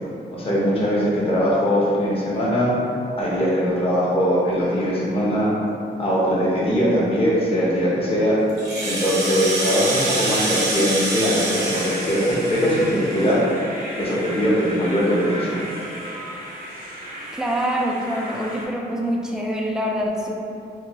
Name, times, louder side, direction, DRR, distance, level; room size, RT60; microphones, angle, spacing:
voice 1, 0.3-2.7 3.2-5.5 6.0-8.4 8.8-13.4 14.0-15.6, equal, 35° left, -7 dB, 0.8 m, -21 dB
Rattle (instrument), 8.5-13.3, right 2 dB, 85° right, 0.8 m, -26 dB
sound 1, 11.4-18.7, equal, 50° right, 0.7 m, -35 dB
voice 2, 17.3-20.3, equal, 5° right, -1 dB, 0.3 m, -25 dB
2.9 x 2.5 x 2.8 m, 2.7 s
cardioid pair, 110°, 18 cm